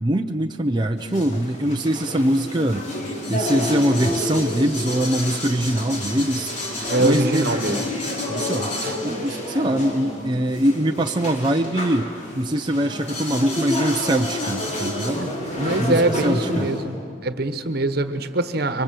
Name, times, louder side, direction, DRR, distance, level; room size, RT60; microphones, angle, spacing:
voice 1, 0.0-2.9 3.3-6.5 7.0-7.7 8.3-8.7 9.0-15.3 15.7-16.7, right 1 dB, 25° right, 3 dB, 0.6 m, -23 dB
sound 1, 1.0-16.8, left 1 dB, 40° left, 4.3 m, -29 dB
voice 2, 6.9-7.8 8.8-9.0 15.6-17.0 17.2-18.8, right 2 dB, 55° right, 10 dB, 1.3 m, -23 dB
27.5 x 24.0 x 7.7 m, 2.3 s
head